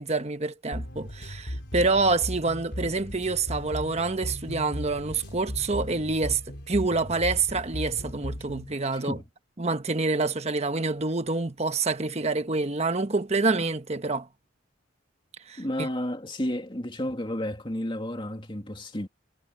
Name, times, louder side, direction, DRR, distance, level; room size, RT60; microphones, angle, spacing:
voice 1, 0.0-6.4 6.7-9.2 9.6-14.3 15.5-15.9, right 3 dB, 35° right, 1.1 m, -27 dB
sound 1, 0.7-8.7, equal, 60° left, 5.1 m, -37 dB
voice 2, 8.9-9.2 15.6-19.1, left 1 dB, 25° left, 2.7 m, -32 dB
head